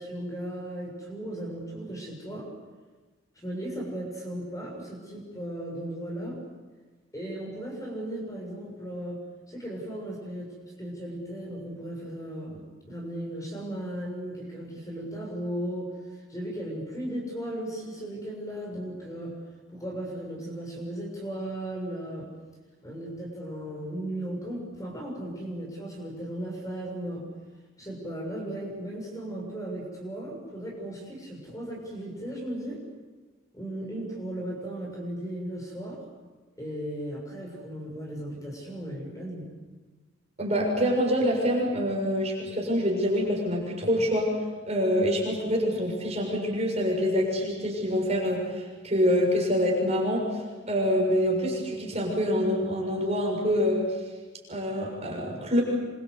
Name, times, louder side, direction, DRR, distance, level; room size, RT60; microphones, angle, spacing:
voice 1, 0.0-2.5 3.4-6.4 7.1-9.2 9.5-19.3 19.7-22.3 22.8-27.2 27.8-32.8 33.5-36.0 36.6-39.5, right 1 dB, 15° left, -1 dB, 6.9 m, -36 dB
voice 2, 40.4-44.3 44.7-53.9 54.5-55.6, equal, 30° right, -1 dB, 6.9 m, -26 dB
27.5 x 25.0 x 8.3 m, 1.3 s
head